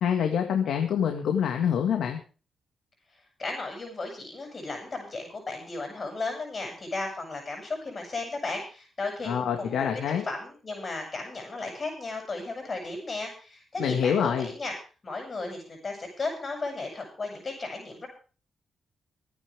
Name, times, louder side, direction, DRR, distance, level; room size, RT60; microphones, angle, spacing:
voice 1, 0.0-2.2 9.2-10.2 13.8-14.5, left 8 dB, 85° left, 4 dB, 1.9 m, -26 dB
voice 2, 3.4-9.9 10.2-14.7 15.0-18.1, left 3 dB, 35° left, 1 dB, 7.6 m, -35 dB
25.0 x 9.8 x 3.6 m, 0.37 s
cardioid pair, 85°, 0 cm